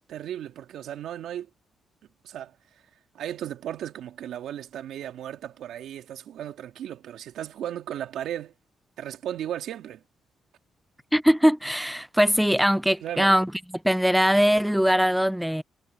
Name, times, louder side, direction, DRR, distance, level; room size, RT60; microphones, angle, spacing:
voice 1, 0.1-1.5 2.2-2.6 3.1-8.5 9.0-10.0 13.0-13.4, right 11 dB, 75° right, 2.3 m, -35 dB
voice 2, 11.1-13.5 13.8-15.6, equal, ahead, 0.5 m, -21 dB
cardioid pair, 90°, 0 cm